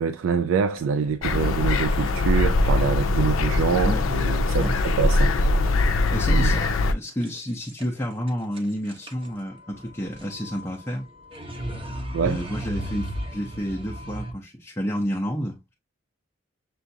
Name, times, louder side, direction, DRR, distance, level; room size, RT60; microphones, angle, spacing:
voice 1, 0.0-5.3 6.3-6.6 12.1-12.4, right 6 dB, 80° right, 0.3 m, -25 dB
sound 1, 0.8-1.9 2.6-2.8 3.1-3.2 3.6-3.7 4.1-4.9 5.2-5.3 5.6-6.1 7.2-8.0 8.3-14.3, right 1 dB, 25° right, 0.8 m, -36 dB
sound 2, 1.2-6.9, left 2 dB, 85° left, 0.5 m, -22 dB
voice 2, 6.1-11.1 12.2-15.7, equal, 15° left, 0.6 m, -30 dB
6.8 x 2.4 x 2.6 m
head